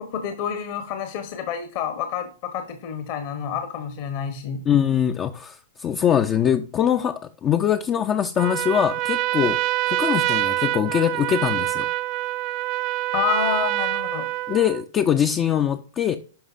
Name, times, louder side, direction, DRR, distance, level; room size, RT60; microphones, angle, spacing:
voice 1, 0.0-4.6 13.1-14.3, left 7 dB, 50° left, 1.1 m, -28 dB
voice 2, 4.7-9.6 9.9-11.9 14.5-16.2, left 9 dB, 25° left, 0.5 m, -22 dB
Trumpet, 8.4-14.8, right 16 dB, 40° right, 0.4 m, -25 dB
11.5 x 5.4 x 2.5 m
figure-of-eight pair, 105°, 0 cm